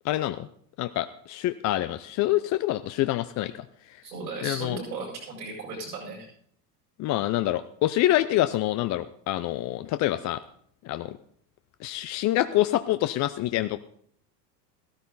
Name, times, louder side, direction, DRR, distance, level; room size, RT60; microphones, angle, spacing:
voice 1, 0.0-0.5 0.8-3.6 4.4-4.8 7.0-10.4 10.8-11.2 11.8-13.8, left 14 dB, 35° left, 12 dB, 0.6 m, -26 dB
voice 2, 4.0-6.3, right 3 dB, 85° right, -3 dB, 7.9 m, -36 dB
15.0 x 13.0 x 4.0 m, 0.63 s
hypercardioid pair, 80°, 49 cm